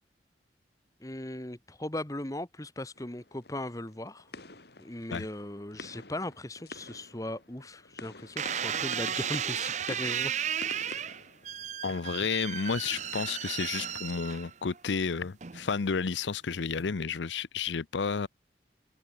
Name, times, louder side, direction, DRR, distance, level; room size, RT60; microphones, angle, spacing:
voice 1, 1.0-4.3 4.8-10.3, left 1 dB, 20° left, 1.3 m, -38 dB
sound 1, 3.0-12.0, left 3 dB, 65° left, 3.0 m, -48 dB
sound 2, 8.4-14.8 15.4-15.9, right 9 dB, 40° right, 0.7 m, -34 dB
voice 2, 11.8-18.3, left 5 dB, 85° left, 0.6 m, -31 dB
head